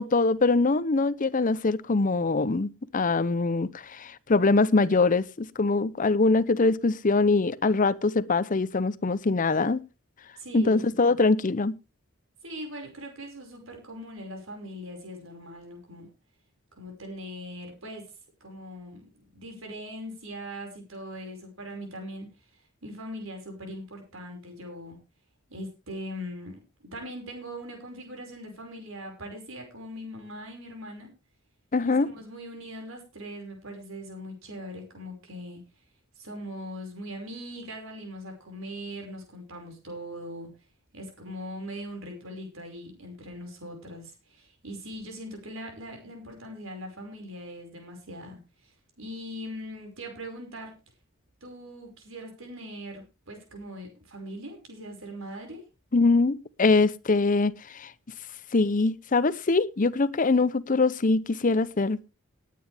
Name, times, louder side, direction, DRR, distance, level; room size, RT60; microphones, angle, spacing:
voice 1, 0.0-9.8 10.5-11.7 31.7-32.1 55.9-57.9 58.5-62.0, left 3 dB, 40° left, 0.7 m, -23 dB
voice 2, 10.4-11.0 12.4-16.1 16.8-18.0 18.4-22.3 22.8-25.0 25.5-26.6 26.9-31.1 31.8-35.6 36.2-40.5 40.9-48.7 49.0-50.7 51.4-55.6, equal, 70° right, 5.5 m, -40 dB
19.0 x 9.4 x 3.5 m
head